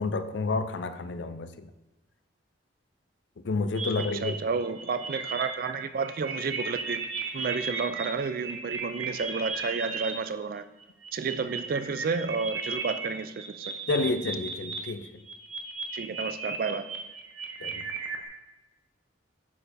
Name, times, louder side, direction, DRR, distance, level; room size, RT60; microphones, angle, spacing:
voice 1, 0.0-1.7 3.4-4.4 13.9-15.2 17.6-17.8, left 3 dB, 65° left, 0.4 m, -30 dB
sound 1, 3.7-10.1 10.8-14.8 15.0-18.3, right 4 dB, 70° right, 0.8 m, -35 dB
voice 2, 4.1-7.0 7.3-10.6 11.1-13.7 15.9-16.9, right 5 dB, 50° right, 0.3 m, -31 dB
8.4 x 6.7 x 2.6 m
head